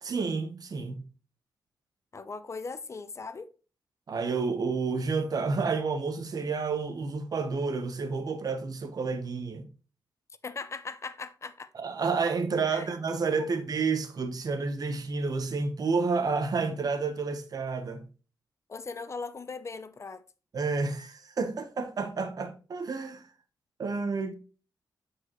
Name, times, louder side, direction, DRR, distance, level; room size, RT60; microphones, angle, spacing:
voice 1, 0.0-1.0 4.1-9.7 11.7-18.0 20.5-23.2 23.8-24.3, right 4 dB, 55° right, 1.2 m, -30 dB
voice 2, 2.1-3.5 10.4-11.7 12.6-12.9 13.4-13.6 18.7-20.2, left 4 dB, 40° left, 0.6 m, -39 dB
8.7 x 4.8 x 3.1 m
cardioid pair, 85°, 8 cm